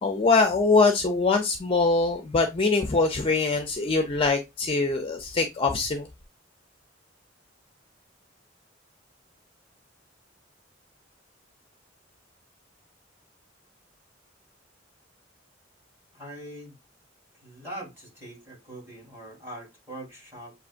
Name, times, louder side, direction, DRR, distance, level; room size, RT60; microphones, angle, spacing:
voice 1, 0.0-6.1, left 3 dB, 30° left, 0.5 m, -23 dB
voice 2, 16.1-16.7 17.4-20.5, right 1 dB, 10° right, 3.4 m, -42 dB
7.2 x 2.8 x 2.5 m
head